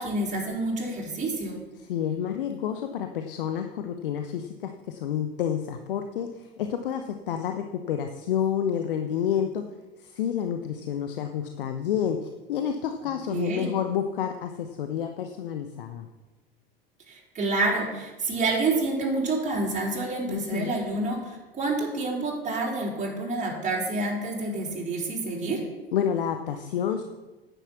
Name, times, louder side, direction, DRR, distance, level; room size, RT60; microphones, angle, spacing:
voice 1, 0.0-1.6 13.3-13.7 17.1-25.6, right 2 dB, 25° right, -3 dB, 3.9 m, -28 dB
voice 2, 1.8-9.6 10.0-16.1 20.3-20.8 25.9-27.0, left 9 dB, 65° left, 7 dB, 0.9 m, -29 dB
10.0 x 9.3 x 5.9 m, 1.1 s
figure-of-eight pair, 75°, 29 cm